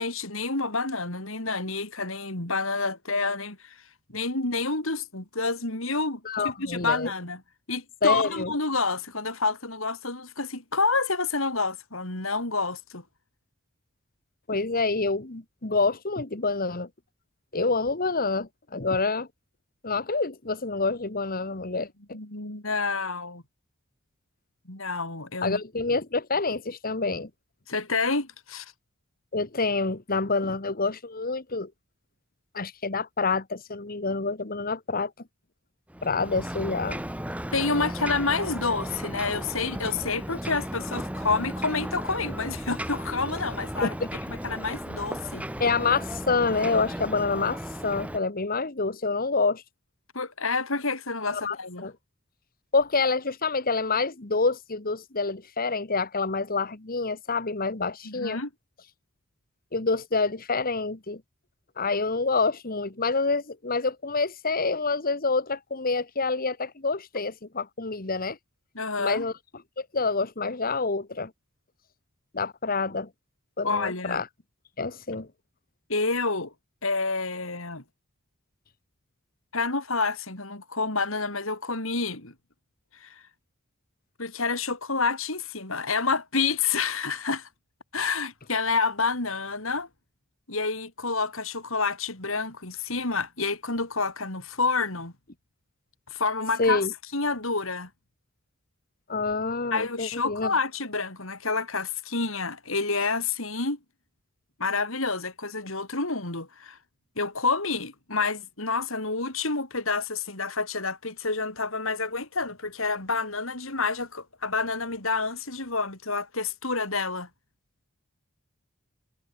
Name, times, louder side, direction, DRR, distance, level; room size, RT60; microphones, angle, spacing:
voice 1, 0.0-3.8 4.1-7.4 7.7-13.0 22.1-23.4 24.7-25.6 27.7-28.7 37.5-45.4 50.1-51.9 58.0-58.5 68.7-69.3 73.6-74.2 75.9-76.5 76.8-77.8 79.5-82.3 82.9-83.2 84.2-87.5 87.9-89.9 90.5-95.1 96.1-96.9 97.1-97.9 99.7-103.8 104.6-106.8 107.2-117.3, left 4 dB, 65° left, 4.8 m, -28 dB
voice 2, 6.3-7.1 8.0-8.5 14.5-16.9 17.5-19.3 19.8-22.2 25.4-27.3 29.3-31.7 32.5-35.1 36.0-37.0 43.8-44.1 45.6-49.6 51.3-51.9 52.7-58.4 59.7-61.2 61.8-68.4 69.0-69.3 69.8-71.3 72.3-73.1 73.6-74.3 74.8-75.3 96.6-96.9 99.1-100.5, left 4 dB, 45° left, 1.7 m, -27 dB
Ocean, 35.9-48.2, equal, 5° right, 4.0 m, -35 dB
head